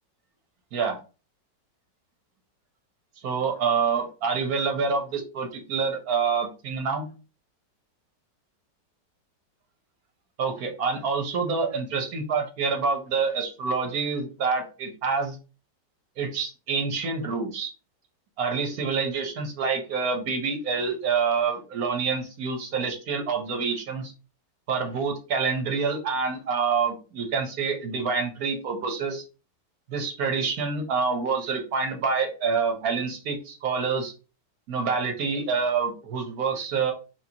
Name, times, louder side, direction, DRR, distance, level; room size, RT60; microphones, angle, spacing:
voice 1, 3.2-7.1 10.4-15.4 16.2-17.7 18.4-24.1 24.7-29.2 29.9-34.1 34.7-36.9, right 5 dB, 60° right, 4 dB, 1.2 m, -27 dB
4.4 x 2.8 x 2.8 m, 0.33 s
omnidirectional pair, 1.9 m